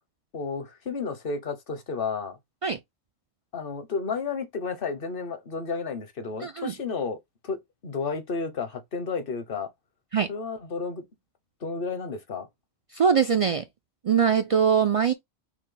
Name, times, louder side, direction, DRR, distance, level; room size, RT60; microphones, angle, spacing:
voice 1, 0.3-2.4 3.5-9.7 10.3-11.0 11.6-12.5, left 4 dB, 60° left, 1.1 m, -32 dB
voice 2, 6.4-6.7 10.1-10.3 12.9-13.6 14.0-15.1, right 7 dB, 60° right, 0.3 m, -22 dB
6.1 x 2.2 x 3.8 m
omnidirectional pair, 1.1 m